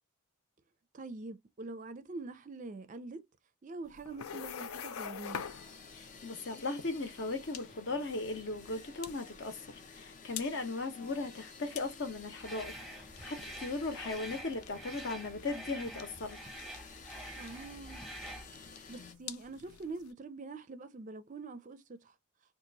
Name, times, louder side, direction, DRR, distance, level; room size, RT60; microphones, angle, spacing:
voice 1, 0.9-3.2 3.6-5.5 17.4-18.0 18.9-22.1, right 3 dB, 35° right, 0.4 m, -44 dB
sound 1, 3.8-20.1, left 8 dB, 85° left, 0.5 m, -48 dB
sound 2, 5.2-19.1, left 4 dB, 35° left, 0.5 m, -53 dB
voice 2, 5.9-9.6 10.0-16.4, left 3 dB, 55° left, 0.8 m, -37 dB
sound 3, 12.4-18.5, right 1 dB, ahead, 0.8 m, -47 dB
2.8 x 2.4 x 3.9 m
head